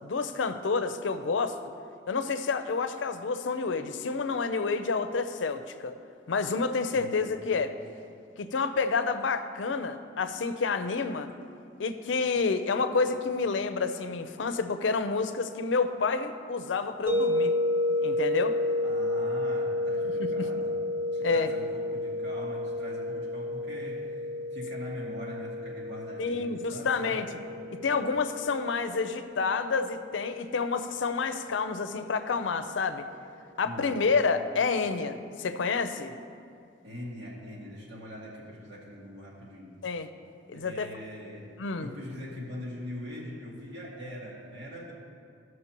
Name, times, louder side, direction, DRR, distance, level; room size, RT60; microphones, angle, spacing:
voice 1, 0.0-1.6 2.1-5.9 6.3-7.7 8.4-11.3 11.8-17.5 18.0-18.6 20.2-20.5 21.2-21.6 26.2-27.3 27.8-33.0 33.6-36.1 39.8-40.1 40.5-40.9 41.6-41.9, left 4 dB, 90° left, 9 dB, 0.5 m, -29 dB
voice 2, 6.9-7.3 18.8-20.8 21.1-24.1 24.5-27.3 33.6-34.1 36.8-39.7 40.5-41.5 41.8-44.9, left 1 dB, 80° right, -6 dB, 2.4 m, -42 dB
sound 1, 17.1-32.0, left 2 dB, 30° right, 1.1 m, -32 dB
15.0 x 6.3 x 3.0 m, 2.3 s
head